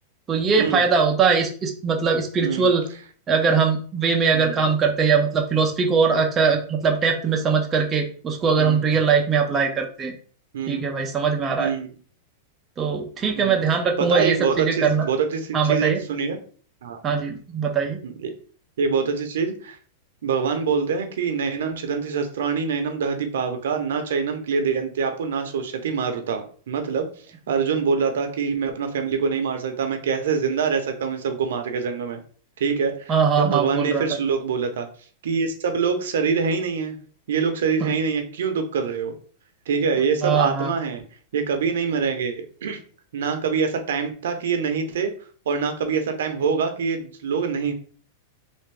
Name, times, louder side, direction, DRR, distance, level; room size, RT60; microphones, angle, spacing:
voice 1, 0.3-2.9 3.3-10.1 10.7-11.7 12.8-15.1 15.5-16.0 17.0-18.0 33.1-34.0 37.8-37.9 40.2-40.7, right 5 dB, 20° right, 2 dB, 0.6 m, -21 dB
voice 2, 2.4-2.7 4.3-4.5 8.6-8.8 10.5-10.9 11.6-11.9 13.4-13.6 14.0-16.4 16.8-17.0 18.0-18.3 18.8-19.8 20.2-27.1 27.5-32.2 32.6-34.9 35.2-37.0 37.3-39.1 39.7-41.0 41.3-42.8 43.1-45.1 45.5-47.7, right 5 dB, 80° right, 6 dB, 0.7 m, -25 dB
3.4 x 2.5 x 3.3 m, 0.43 s
supercardioid pair, 140°, 0 cm